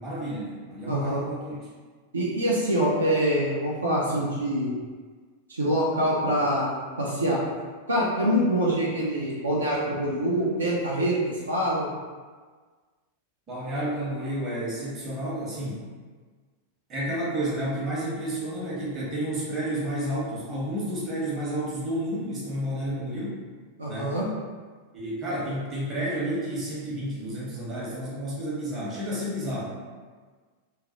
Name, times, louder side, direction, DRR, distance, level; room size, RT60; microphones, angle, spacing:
voice 1, 0.0-1.7 13.5-15.8 16.9-23.5 23.9-24.2 24.9-29.9, right 1 dB, 25° right, -7 dB, 0.8 m, -31 dB
voice 2, 0.9-1.2 2.1-4.7 5.5-6.7 7.0-7.4 7.9-11.9 23.8-24.3, equal, 75° right, -5 dB, 0.4 m, -25 dB
2.3 x 2.1 x 2.6 m, 1.5 s
figure-of-eight pair, 90°, 0 cm